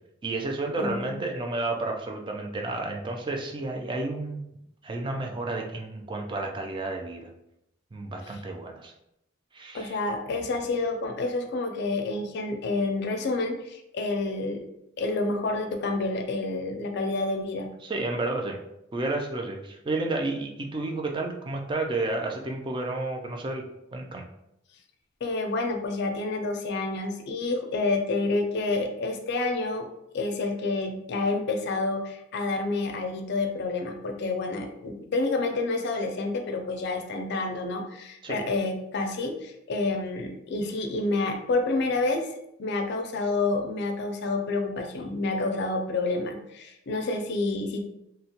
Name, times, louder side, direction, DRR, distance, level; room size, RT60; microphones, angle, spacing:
voice 1, 0.2-4.4 4.8-7.3 7.9-8.9 9.5-10.0 17.8-18.6 18.9-23.6 23.9-24.2 38.2-38.4, right 2 dB, 25° right, 2 dB, 0.4 m, -31 dB
voice 2, 0.8-1.1 9.7-14.7 15.0-17.7 25.2-29.9 30.1-42.3 42.6-47.8, left 3 dB, 60° left, 5 dB, 0.4 m, -29 dB
2.8 x 2.2 x 2.8 m, 0.81 s
head